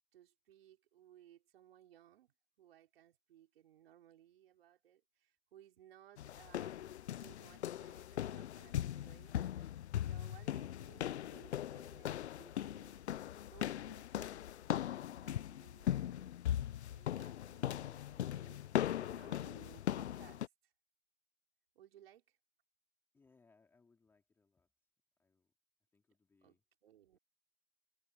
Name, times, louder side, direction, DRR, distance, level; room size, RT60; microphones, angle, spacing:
voice 1, 0.1-9.7 10.1-13.0 13.5-14.8 15.1-16.3 16.8-18.6 18.9-20.7 21.7-22.4 26.4-27.2, right 11 dB, 50° right, 4.9 m, -63 dB
sound 1, 6.2-20.5, left 11 dB, 60° left, 0.6 m, -39 dB
voice 2, 23.1-24.7 25.2-25.5 25.9-26.6, left 4 dB, 5° left, 3.3 m, -71 dB
hypercardioid pair, 160°, 37 cm